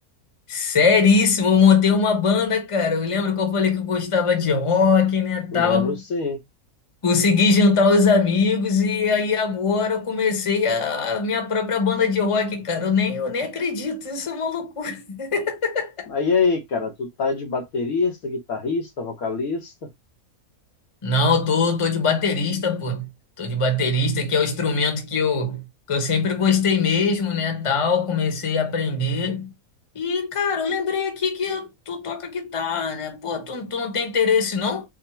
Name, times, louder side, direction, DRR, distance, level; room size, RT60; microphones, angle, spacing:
voice 1, 0.5-6.0 7.0-16.1 21.0-23.1 23.4-29.5 29.9-34.8, left 5 dB, 25° left, 0.9 m, -21 dB
voice 2, 5.5-6.4 16.1-19.7, left 4 dB, 80° left, 1.5 m, -25 dB
4.3 x 2.1 x 4.2 m
omnidirectional pair, 1.5 m